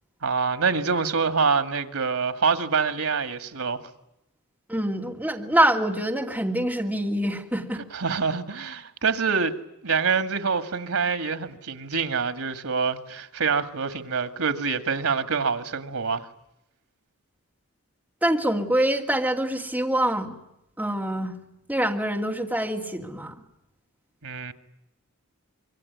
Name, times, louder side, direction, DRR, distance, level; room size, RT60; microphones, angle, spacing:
voice 1, 0.2-3.8 7.9-9.6 9.8-16.3 24.2-24.5, right 5 dB, 85° right, 2.1 m, -26 dB
voice 2, 4.7-7.8 18.2-20.4 20.8-21.3 21.7-23.4, right 1 dB, 5° right, 2.7 m, -25 dB
26.0 x 23.5 x 9.5 m
head